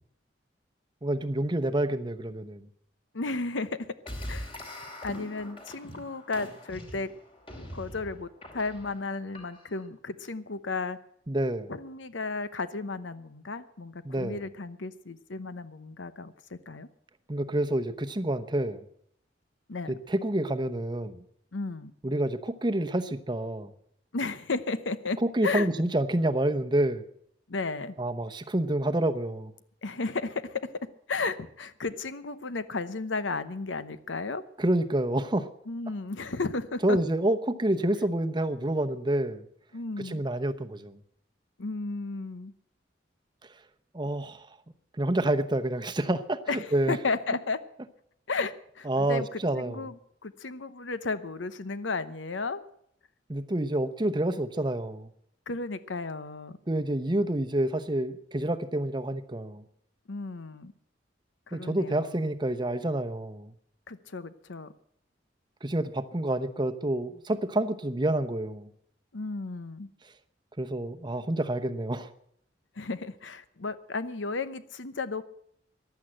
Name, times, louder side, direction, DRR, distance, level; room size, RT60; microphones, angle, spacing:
voice 1, 1.0-2.7 11.3-11.7 14.0-14.4 17.3-18.8 19.9-21.2 22.0-23.7 25.2-27.0 28.0-29.5 34.6-35.5 36.8-39.4 40.0-41.0 43.9-44.5 45.0-47.0 48.9-49.8 53.3-55.1 56.7-59.6 61.5-63.5 65.6-68.7 70.6-72.1, right 1 dB, 25° right, 8 dB, 0.8 m, -28 dB
voice 2, 3.1-3.8 4.3-4.5 5.0-7.1 7.7-11.0 11.7-16.9 19.7-20.0 21.5-21.9 24.1-25.2 25.4-25.7 27.5-27.9 29.8-30.7 31.1-34.4 35.7-37.0 39.7-40.2 41.6-42.5 46.5-47.6 48.3-50.0 50.2-52.6 55.5-56.6 60.1-60.7 61.5-62.2 63.9-64.7 69.1-69.9 72.8-75.2, left 3 dB, 85° left, 13 dB, 0.9 m, -34 dB
sound 1, 4.1-9.9, left 1 dB, 30° left, 2.8 m, -42 dB
15.0 x 11.0 x 7.8 m, 0.69 s
head